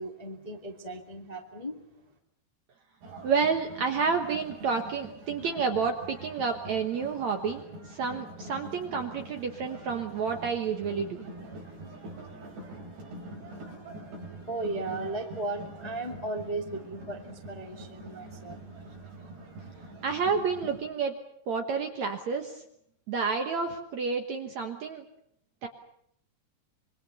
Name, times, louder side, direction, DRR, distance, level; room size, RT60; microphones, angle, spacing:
voice 1, 0.0-1.8 14.5-18.6, right 2 dB, 20° left, 3 dB, 1.1 m, -36 dB
sound 1, 3.0-20.8, right 2 dB, 80° right, 7.0 m, -45 dB
voice 2, 3.2-11.3 20.0-21.1 21.5-22.6 23.1-25.0 25.6-25.7, right 5 dB, 60° right, 5 dB, 2.0 m, -30 dB
26.0 x 23.5 x 7.0 m, 0.71 s
omnidirectional pair, 4.8 m